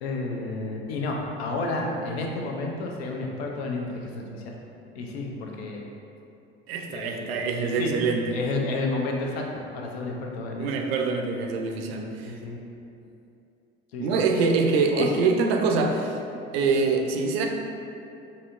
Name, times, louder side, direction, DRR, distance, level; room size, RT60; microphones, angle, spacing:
voice 1, 0.0-4.6 4.9-5.8 6.9-7.9 8.3-9.5 9.7-10.7 12.3-12.6 13.9-14.2 14.9-15.1, left 2 dB, 75° left, 0 dB, 0.5 m, -31 dB
voice 2, 6.7-8.4 10.6-12.3 14.0-16.2 16.5-17.5, right 4 dB, 75° right, 3 dB, 0.4 m, -24 dB
4.1 x 2.7 x 2.4 m, 2.7 s
hypercardioid pair, 60°, 31 cm